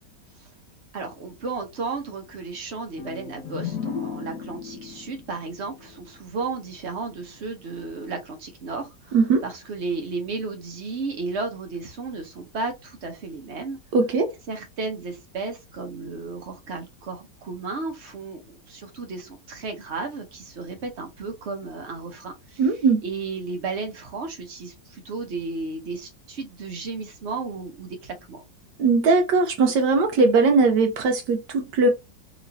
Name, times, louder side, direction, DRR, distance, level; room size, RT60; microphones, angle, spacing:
voice 1, 0.9-9.2 9.4-13.8 14.5-22.6 23.0-28.4, right 3 dB, 50° right, 0.9 m, -33 dB
sound 1, 3.0-6.7, left 7 dB, 70° left, 1.0 m, -36 dB
voice 2, 9.1-9.4 13.9-14.3 22.6-23.0 28.8-31.9, right 4 dB, 75° right, 1.2 m, -19 dB
3.1 x 3.0 x 2.6 m
omnidirectional pair, 1.9 m